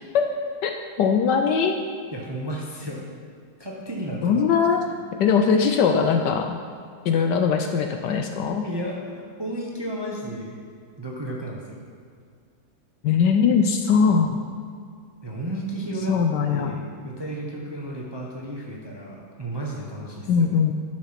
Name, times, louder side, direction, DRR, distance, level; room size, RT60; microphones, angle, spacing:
voice 1, 1.0-1.8 4.2-4.8 5.2-6.6 7.0-8.6 13.0-14.4 16.1-16.8 20.3-20.7, left 6 dB, 70° left, 5 dB, 1.1 m, -20 dB
voice 2, 2.1-3.0 3.6-4.4 8.6-10.6 11.0-11.8 15.2-16.2 16.5-20.5, right 1 dB, 20° right, -2 dB, 0.8 m, -33 dB
11.0 x 6.4 x 5.8 m, 2.2 s
omnidirectional pair, 2.2 m